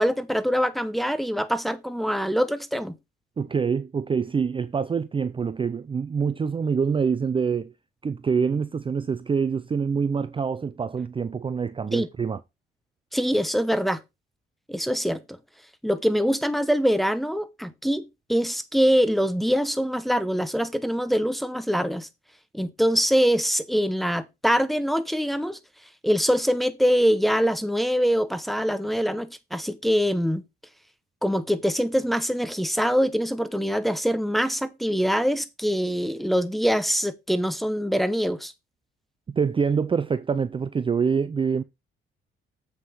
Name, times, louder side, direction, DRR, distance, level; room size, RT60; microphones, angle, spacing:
voice 1, 0.0-3.0 11.9-12.1 13.1-14.0 14.7-15.4 15.8-22.1 22.5-25.6 26.0-30.4 31.2-38.5, equal, ahead, 1.0 m, -24 dB
voice 2, 3.4-7.7 8.0-12.4 39.3-41.6, right 6 dB, 25° right, 0.5 m, -25 dB
7.6 x 5.8 x 4.8 m
cardioid pair, 90°, 20 cm